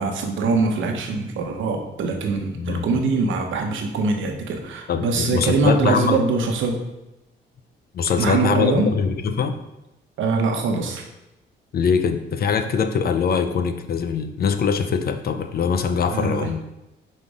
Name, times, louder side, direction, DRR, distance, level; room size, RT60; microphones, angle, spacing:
voice 1, 0.0-6.8 8.2-8.9 10.2-11.0 16.1-16.5, right 4 dB, 75° right, 3 dB, 1.1 m, -23 dB
voice 2, 2.5-3.0 4.9-6.2 7.9-9.6 11.7-16.6, left 6 dB, 50° left, 9 dB, 0.6 m, -22 dB
5.5 x 4.1 x 4.9 m, 0.92 s
cardioid pair, 90°, 20 cm